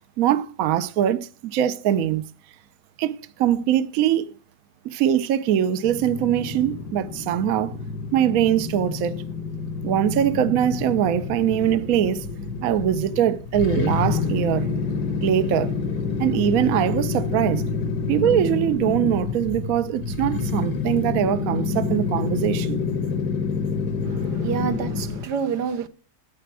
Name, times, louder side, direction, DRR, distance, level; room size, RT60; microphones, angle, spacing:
voice 1, 0.2-2.2 3.0-4.3 4.8-7.8 8.1-9.2 9.8-12.3 12.6-14.7 15.2-15.7 16.2-17.6 18.1-22.8, right 10 dB, 65° right, 1.0 m, -22 dB
sound 1, 5.8-25.3, left 4 dB, 70° left, 1.6 m, -28 dB
voice 2, 24.0-25.9, right 7 dB, 80° right, 1.6 m, -28 dB
10.0 x 9.2 x 4.7 m
omnidirectional pair, 1.8 m